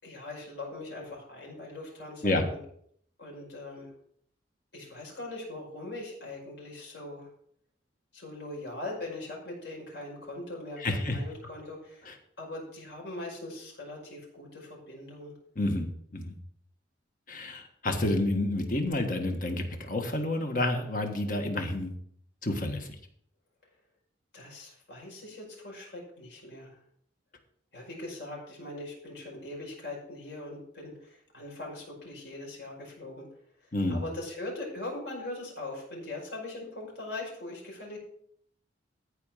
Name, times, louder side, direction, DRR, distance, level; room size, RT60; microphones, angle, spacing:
voice 1, 0.0-2.6 3.2-3.9 4.7-7.3 8.1-12.1 12.4-15.3 24.3-26.8 27.7-33.3 33.6-38.0, left 2 dB, 60° left, -2 dB, 5.3 m, -41 dB
voice 2, 10.8-11.2 12.0-12.1 15.5-16.3 17.3-21.9 22.4-23.0 33.7-34.0, left 1 dB, 45° left, 5 dB, 1.5 m, -29 dB
14.5 x 4.9 x 5.7 m, 0.66 s
head